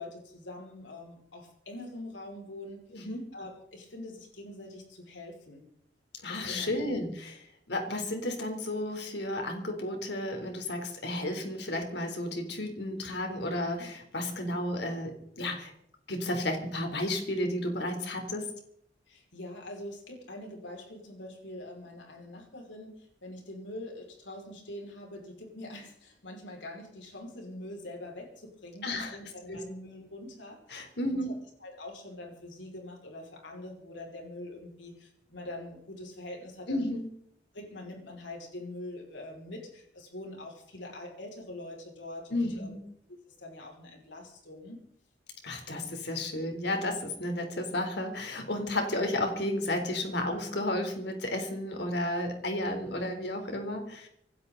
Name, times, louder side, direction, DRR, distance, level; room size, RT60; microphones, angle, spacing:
voice 1, 0.0-5.6 6.3-6.9 19.1-30.8 31.1-31.3 31.6-36.9 37.5-42.7 43.3-44.8, left 1 dB, 80° left, 1 dB, 5.6 m, -44 dB
voice 2, 2.9-3.2 6.2-7.4 7.7-15.7 16.1-18.4 28.8-29.2 29.5-29.6 30.7-31.3 36.7-37.1 42.3-42.8 45.4-54.1, left 1 dB, 65° left, 4 dB, 3.7 m, -32 dB
26.5 x 12.0 x 4.0 m, 0.71 s
head